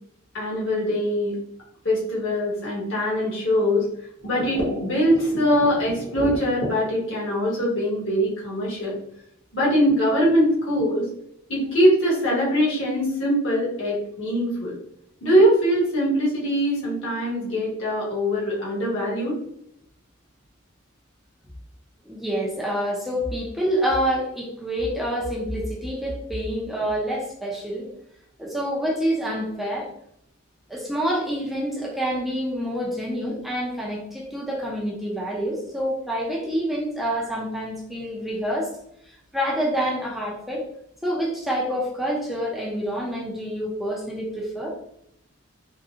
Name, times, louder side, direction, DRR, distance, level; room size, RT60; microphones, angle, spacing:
voice 1, 0.3-1.4 1.8-3.9 4.2-8.9 9.5-11.0 11.5-14.7 15.2-19.4, equal, 65° left, -5 dB, 1.4 m, -22 dB
voice 2, 22.0-27.9 28.4-29.9 30.7-38.7 39.1-40.7 41.0-44.8, equal, ahead, -3 dB, 0.5 m, -27 dB
3.6 x 2.2 x 2.7 m, 0.74 s
head